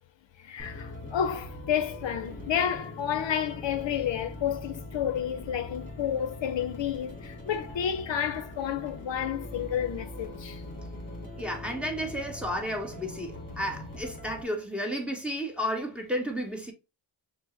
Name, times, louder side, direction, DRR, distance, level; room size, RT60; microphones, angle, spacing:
voice 1, 0.4-10.6, left 9 dB, 65° left, 0.6 m, -30 dB
sound 1, 0.6-14.4, left 2 dB, 25° left, 2.0 m, -42 dB
voice 2, 11.4-16.7, equal, ahead, 1.1 m, -32 dB
6.2 x 2.1 x 3.1 m
wide cardioid pair, 105°, 48 cm